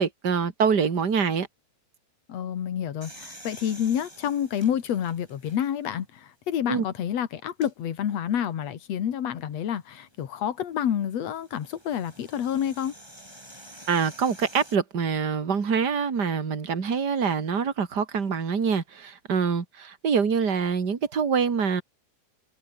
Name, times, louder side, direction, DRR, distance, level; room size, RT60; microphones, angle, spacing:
voice 1, 0.0-1.5 6.7-6.8 13.9-21.8, right 6 dB, 30° right, 2.5 m, -25 dB
voice 2, 2.3-12.9, left 9 dB, 50° left, 2.5 m, -28 dB
sound 1, 3.0-5.9 6.5-6.6 7.5-7.7 9.9-14.8, right 1 dB, 5° right, 5.8 m, -49 dB
omnidirectional pair, 4.3 m